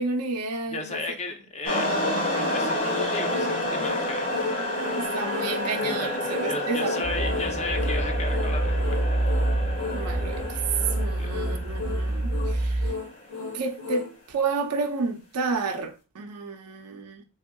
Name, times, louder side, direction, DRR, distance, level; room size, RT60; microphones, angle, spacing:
voice 1, 0.0-1.0 5.0-7.2 9.9-10.6 11.0-12.9 13.5-17.2, right 4 dB, 85° right, 0.6 m, -31 dB
voice 2, 0.7-1.9 2.2-4.3 5.7-9.2 11.2-11.3, left 3 dB, 30° left, 0.5 m, -35 dB
sound 1, 1.7-13.2, left 1 dB, 70° left, 1.5 m, -30 dB
sound 2, 2.3-14.1, left 4 dB, 90° left, 1.3 m, -35 dB
sound 3, 7.0-12.9, right 1 dB, 25° right, 0.5 m, -27 dB
3.5 x 3.4 x 2.2 m
head